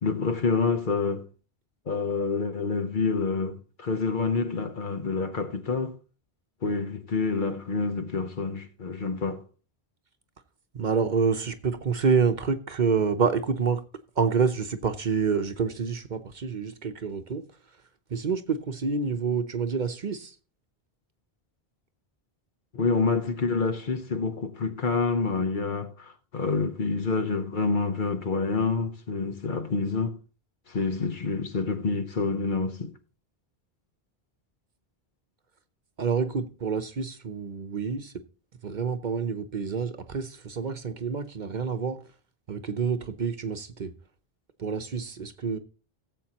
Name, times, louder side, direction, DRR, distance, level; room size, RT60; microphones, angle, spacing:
voice 1, 0.0-1.3 1.9-6.0 6.6-9.4 22.7-30.2 30.7-32.9, left 4 dB, 55° left, 1.0 m, -27 dB
voice 2, 10.7-13.8 14.2-17.4 18.1-20.3 36.0-38.1 38.6-42.0 42.5-43.9 44.6-45.6, right 5 dB, 50° right, 0.9 m, -27 dB
17.0 x 7.6 x 2.9 m
omnidirectional pair, 1.0 m